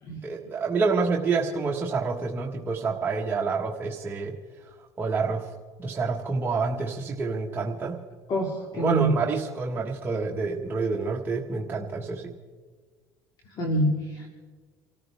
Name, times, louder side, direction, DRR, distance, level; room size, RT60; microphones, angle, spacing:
voice 1, 0.2-4.4 4.7-5.5 5.8-8.0 8.7-12.3, right 4 dB, 25° right, -2 dB, 1.5 m, -28 dB
voice 2, 8.3-9.2 13.5-14.3, right 1 dB, 50° left, 0 dB, 2.5 m, -26 dB
28.0 x 14.0 x 3.5 m, 1.5 s
supercardioid pair, 105°, 9 cm